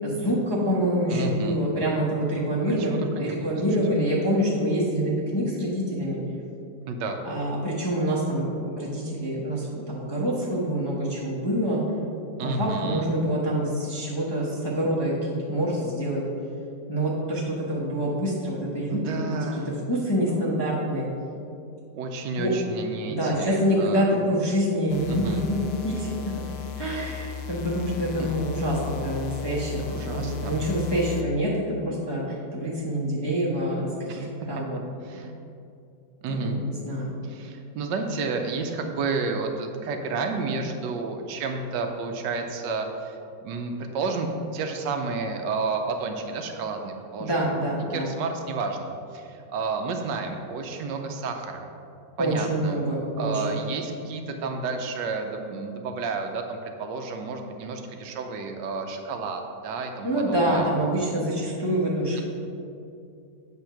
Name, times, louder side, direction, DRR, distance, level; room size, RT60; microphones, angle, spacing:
voice 1, 0.0-6.2 7.2-11.8 12.4-16.2 16.9-19.2 19.9-21.1 22.4-22.5 23.1-26.1 26.8-31.5 31.8-32.2 32.5-34.8 36.3-37.1 47.2-48.1 52.2-53.6 60.0-62.2, equal, 20° left, -6 dB, 0.8 m, -26 dB
voice 2, 1.1-1.6 2.6-3.5 6.8-7.2 12.4-13.1 18.9-19.9 20.2-20.4 21.9-24.1 25.1-25.4 28.2-28.3 29.8-30.6 34.1-34.5 35.0-35.3 36.2-36.6 37.2-43.2 43.4-47.5 47.9-51.7 52.2-52.8 53.2-60.7, right 4 dB, 75° right, 4 dB, 1.3 m, -31 dB
sound 1, 24.9-31.2, left 8 dB, 70° left, 0.9 m, -36 dB
8.3 x 3.5 x 5.7 m, 2.6 s
omnidirectional pair, 2.0 m